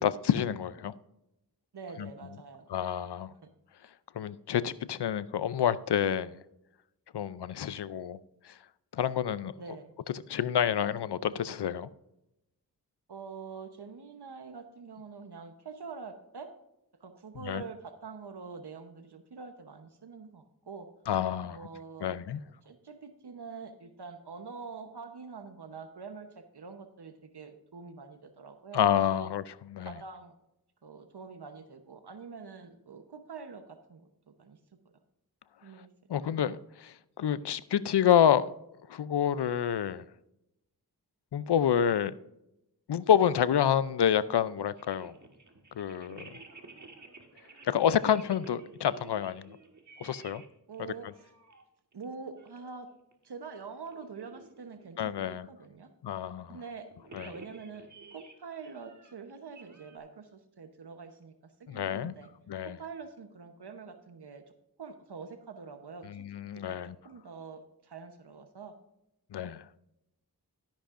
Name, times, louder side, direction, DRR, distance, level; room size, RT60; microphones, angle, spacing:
voice 1, 0.0-0.9 2.0-2.1 2.7-3.3 4.1-6.3 7.1-8.2 8.4-8.6 8.9-9.5 10.3-11.9 17.4-17.6 21.1-21.7 22.0-22.4 28.7-29.9 36.1-38.5 38.9-40.0 41.3-42.1 42.9-45.1 45.8-46.4 47.6-49.6 50.0-50.4 55.0-55.5 56.0-56.6 57.1-57.3 61.7-62.1 62.5-62.8 66.0-67.0 69.3-69.7, left 9 dB, 80° left, 0.5 m, -28 dB
voice 2, 1.7-2.7 3.4-3.5 9.6-9.9 13.1-16.5 17.0-20.9 21.5-22.2 22.6-29.3 29.8-30.3 30.8-34.6 35.6-35.9 36.2-36.4 46.1-46.3 50.7-51.3 51.9-52.9 53.2-55.9 56.5-56.9 57.2-62.3 62.6-64.4 64.8-66.2 66.7-68.7, right 5 dB, 75° right, 1.0 m, -45 dB
sound 1, 44.7-50.5 50.7-51.6 51.9-52.0 52.4-52.8 53.1-53.3 53.7-55.0 56.9-60.0, right 3 dB, 45° right, 1.6 m, -53 dB
13.0 x 10.0 x 2.5 m
wide cardioid pair, 45°, 40 cm